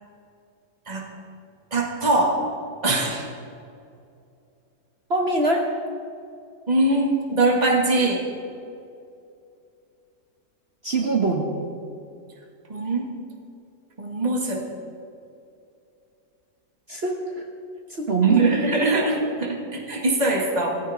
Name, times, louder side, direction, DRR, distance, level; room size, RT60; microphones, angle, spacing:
voice 1, 1.7-2.4 2.8-3.3 6.7-8.3 12.7-13.1 14.0-14.6 18.2-20.8, right 2 dB, 25° right, 1 dB, 1.9 m, -22 dB
voice 2, 5.1-5.7 10.8-11.5 16.9-17.4 17.9-18.6, right 4 dB, 40° right, 1 dB, 1.3 m, -22 dB
15.0 x 15.0 x 5.0 m, 2.5 s
omnidirectional pair, 1.8 m